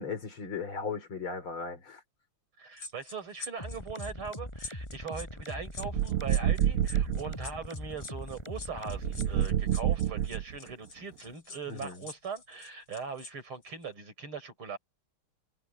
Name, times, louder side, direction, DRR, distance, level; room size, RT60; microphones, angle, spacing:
voice 1, 0.0-2.0 11.7-12.0, left 5 dB, 70° left, 4.7 m, -37 dB
voice 2, 2.6-14.8, right 5 dB, 70° right, 5.8 m, -40 dB
sound 1, 2.8-13.3 13.6-13.8, left 3 dB, 85° left, 6.2 m, -45 dB
sound 2, 3.6-9.6, left 1 dB, 10° left, 6.7 m, -41 dB
sound 3, 5.8-7.4 8.9-10.7, right 11 dB, 90° right, 1.7 m, -28 dB
omnidirectional pair, 2.4 m